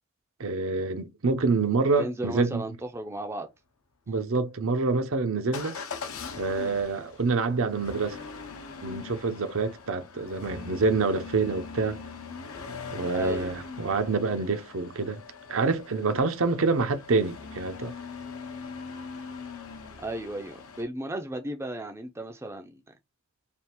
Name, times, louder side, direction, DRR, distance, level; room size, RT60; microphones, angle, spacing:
voice 1, 0.4-2.6 4.1-5.8 6.3-8.2 8.8-12.0 12.9-15.2 15.5-17.9, right 3 dB, 65° right, 0.6 m, -27 dB
voice 2, 2.0-3.5 4.1-4.2 13.1-13.5 20.0-22.8, right 1 dB, 10° right, 0.4 m, -35 dB
Motor vehicle (road) / Engine starting / Accelerating revving vroom, 5.5-20.8, left 5 dB, 75° left, 0.8 m, -41 dB
3.4 x 2.4 x 4.3 m
head